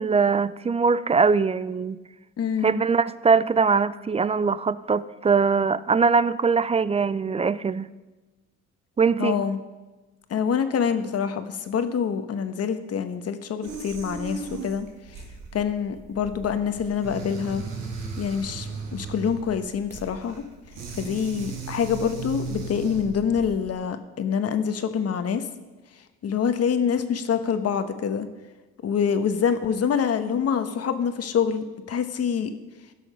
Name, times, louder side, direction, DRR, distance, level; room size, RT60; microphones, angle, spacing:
voice 1, 0.0-2.0 2.6-7.9 9.0-9.4, right 5 dB, 20° right, 17 dB, 0.4 m, -22 dB
voice 2, 2.4-2.8 9.2-9.6 10.3-14.9 15.5-17.6 18.2-20.4 20.9-25.4 26.2-28.3 28.8-32.5, left 7 dB, 55° left, 10 dB, 1.1 m, -26 dB
sound 1, 13.6-23.7, right 4 dB, 85° right, 2.2 m, -37 dB
16.0 x 6.3 x 5.6 m, 1.2 s
cardioid pair, 90°, 30 cm